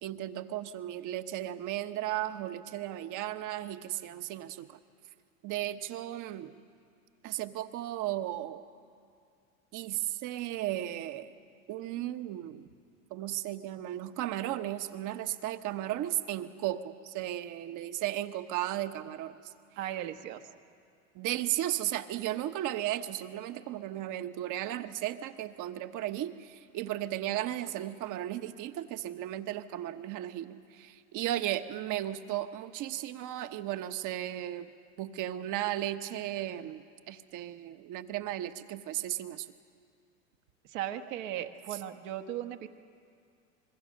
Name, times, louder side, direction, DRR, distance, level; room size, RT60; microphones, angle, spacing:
voice 1, 0.0-4.8 5.4-6.5 7.2-8.6 9.7-11.3 11.7-12.7 13.1-19.5 21.1-34.7 35.0-39.5, right 13 dB, 50° right, 10 dB, 1.2 m, -35 dB
voice 2, 19.8-20.4 40.7-42.7, right 12 dB, 65° right, 6 dB, 1.5 m, -37 dB
25.5 x 22.0 x 6.6 m, 2.3 s
hypercardioid pair, 90°, 40 cm